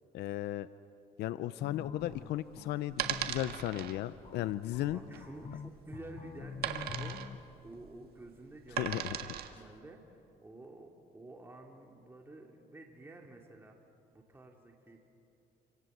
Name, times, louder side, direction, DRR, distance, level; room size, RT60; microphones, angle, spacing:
voice 1, 0.1-0.7 1.2-5.0 8.8-9.2, left 14 dB, 80° left, 14 dB, 0.6 m, -35 dB
sound 1, 1.6-7.4, left 7 dB, 35° left, 0.7 m, -46 dB
sound 2, 2.0-9.7, right 11 dB, 65° right, 1.7 m, -39 dB
voice 2, 4.9-13.7 14.1-15.1, right 2 dB, 15° right, 1 dB, 2.6 m, -51 dB
28.5 x 26.0 x 8.0 m, 2.7 s
cardioid pair, 110°, 17 cm